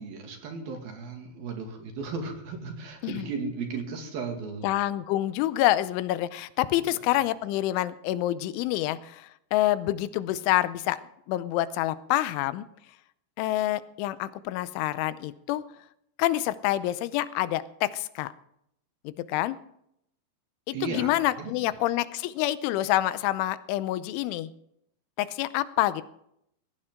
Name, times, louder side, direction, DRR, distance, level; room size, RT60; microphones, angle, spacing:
voice 1, 0.0-4.7 6.8-7.0 20.7-21.7, right 4 dB, 60° right, 3 dB, 3.7 m, -36 dB
voice 2, 4.6-11.0 11.3-12.7 13.4-15.6 16.2-18.3 19.0-19.6 20.7-24.5 25.2-26.0, left 15 dB, 90° left, 15 dB, 3.2 m, -27 dB
19.0 x 15.5 x 3.8 m, 0.75 s
omnidirectional pair, 5.4 m